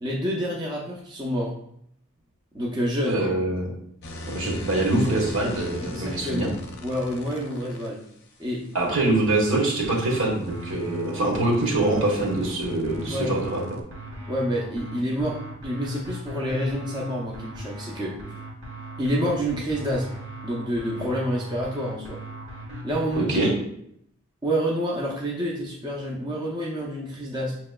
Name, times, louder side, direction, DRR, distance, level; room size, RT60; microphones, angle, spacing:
voice 1, 0.0-1.5 2.5-3.3 5.8-6.5 6.8-8.0 8.4-8.6 13.1-13.3 14.3-18.2 19.0-20.1 20.4-22.2 22.8-23.5 24.4-27.6, equal, 20° right, -4 dB, 0.6 m, -28 dB
voice 2, 3.1-3.7 4.3-6.5 8.7-13.6 23.2-23.5, right 2 dB, 70° right, -1 dB, 1.2 m, -24 dB
sound 1, 4.0-7.9 10.2-13.8, left 2 dB, 50° left, 0.6 m, -40 dB
sound 2, 9.8-23.5, right 1 dB, 50° right, 1.3 m, -38 dB
6.0 x 3.0 x 2.2 m, 0.70 s
head